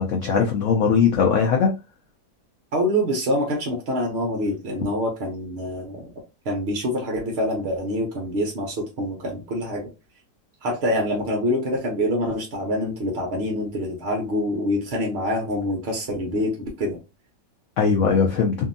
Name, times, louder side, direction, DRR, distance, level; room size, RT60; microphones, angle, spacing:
voice 1, 0.0-1.7 17.8-18.5, left 6 dB, 85° left, 0.6 m, -20 dB
voice 2, 2.7-6.1 6.5-9.9 10.6-17.0, equal, 65° right, 0.6 m, -25 dB
2.7 x 2.7 x 2.5 m
omnidirectional pair, 1.9 m